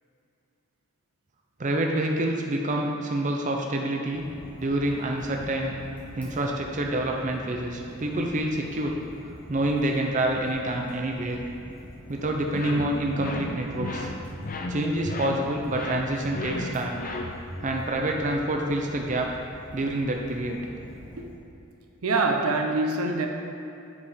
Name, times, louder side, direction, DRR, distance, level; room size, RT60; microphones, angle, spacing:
voice 1, 1.6-4.2 4.6-5.7 6.2-9.0 9.5-11.4 12.1-14.1 14.7-17.0 17.6-19.3 19.7-20.6, right 1 dB, 35° right, 1 dB, 0.6 m, -27 dB
Fire, 4.1-21.3, equal, 5° left, 1.3 m, -45 dB
sound 1, 12.5-17.6, left 2 dB, 40° left, 0.6 m, -34 dB
voice 2, 22.0-23.3, right 3 dB, 80° right, 3 dB, 0.8 m, -24 dB
8.3 x 4.9 x 5.0 m, 2.7 s
head